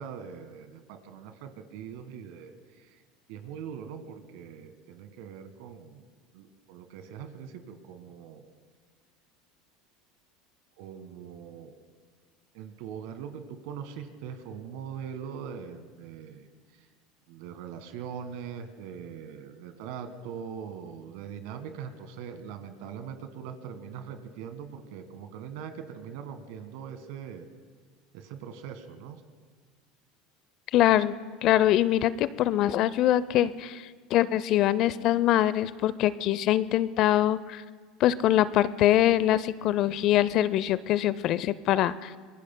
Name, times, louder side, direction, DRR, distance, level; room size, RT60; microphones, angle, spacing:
voice 1, 0.0-3.0 3.3-6.0 6.3-8.4 10.8-11.8 12.5-16.9 17.3-27.5 28.1-29.2, right 7 dB, 65° right, 8 dB, 1.5 m, -41 dB
voice 2, 30.7-31.1 31.4-33.8 34.1-37.6 38.0-42.1, left 13 dB, 55° left, 17 dB, 0.5 m, -23 dB
26.0 x 21.0 x 2.2 m, 1.6 s
hypercardioid pair, 80°, 0 cm